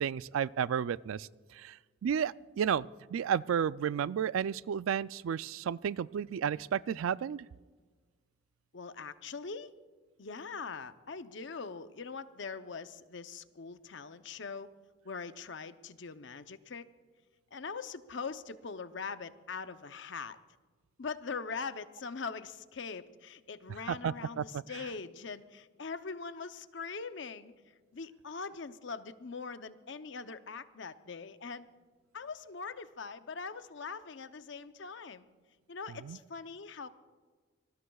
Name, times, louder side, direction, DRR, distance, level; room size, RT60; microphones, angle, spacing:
voice 1, 0.0-1.3 1.6-1.8 2.0-2.8 3.1-7.4 23.9-24.4 36.1-36.2, right 8 dB, 85° right, 19 dB, 0.3 m, -32 dB
voice 2, 8.7-9.7 10.2-14.7 15.0-16.9 17.5-20.4 21.0-27.5 27.9-31.7 32.1-35.3 35.7-36.9, left 5 dB, 65° left, 11 dB, 0.7 m, -42 dB
25.5 x 19.5 x 2.3 m, 1.4 s
head